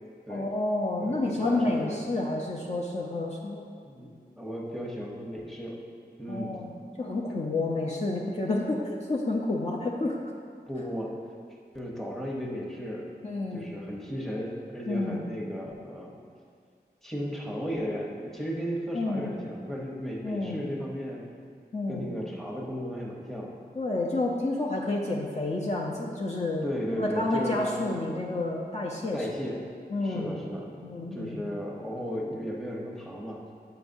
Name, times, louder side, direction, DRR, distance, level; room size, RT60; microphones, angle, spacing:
voice 1, 0.3-3.6 6.3-10.3 13.2-13.7 14.9-15.2 18.9-19.4 20.2-20.6 21.7-22.1 23.8-29.3 29.9-30.4 30.8-31.5, left 2 dB, 40° left, -3 dB, 0.6 m, -30 dB
voice 2, 1.0-2.0 3.8-5.8 6.2-6.6 10.7-11.2 11.7-13.1 13.5-16.1 17.0-21.2 21.9-23.5 26.6-27.8 29.1-29.6 30.0-33.4, equal, ahead, -2 dB, 1.0 m, -35 dB
7.7 x 5.7 x 2.6 m, 2.2 s
wide cardioid pair, 60°, 17 cm